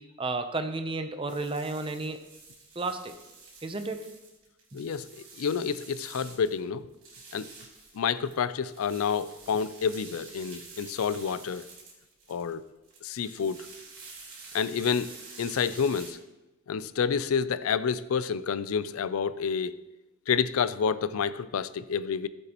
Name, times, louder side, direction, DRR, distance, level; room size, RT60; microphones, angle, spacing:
voice 1, 0.0-2.2 2.8-3.2 3.6-4.1 4.7-4.8, right 3 dB, 25° right, 8 dB, 0.6 m, -32 dB
sound 1, 1.3-6.6 6.9-16.1, right 4 dB, 70° right, 3.2 m, -49 dB
voice 2, 4.7-6.9 7.3-7.5 7.9-11.7 12.3-12.6 13.0-13.6 14.5-15.1 15.4-16.2 16.7-19.7 20.3-22.3, left 6 dB, 90° left, 15 dB, 0.4 m, -29 dB
14.5 x 7.9 x 3.0 m, 1.0 s
head